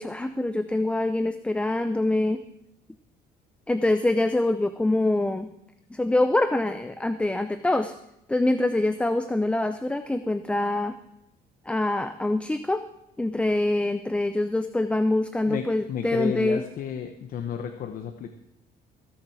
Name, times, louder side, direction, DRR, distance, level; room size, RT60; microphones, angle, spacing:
voice 1, 0.0-2.4 3.7-5.5 5.9-7.9 8.3-10.9 11.7-12.8 13.2-16.6, left 2 dB, 5° left, 10 dB, 0.5 m, -25 dB
voice 2, 15.5-18.3, left 8 dB, 55° left, 6 dB, 0.9 m, -32 dB
16.0 x 7.5 x 4.8 m, 0.81 s
cardioid pair, 110°, 17 cm